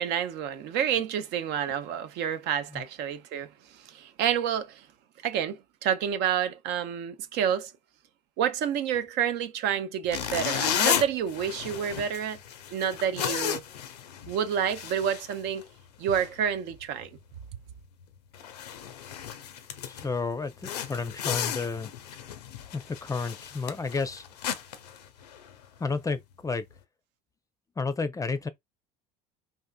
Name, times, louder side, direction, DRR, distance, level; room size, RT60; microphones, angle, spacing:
voice 1, 0.0-4.9 5.2-7.7 8.4-12.4 12.7-13.6 14.3-15.7 16.0-17.1, right 8 dB, 60° right, 0.5 m, -29 dB
sound 1, 10.1-15.8 16.1-16.3 16.8-17.0 17.4-17.5 18.0-18.1 18.3-20.1 20.6-25.6, left 9 dB, 90° left, 0.5 m, -33 dB
voice 2, 19.8-21.9 22.7-24.2 25.8-26.6 27.8-28.5, left 4 dB, 15° left, 0.5 m, -31 dB
3.6 x 2.5 x 2.2 m
hypercardioid pair, 70°, 20 cm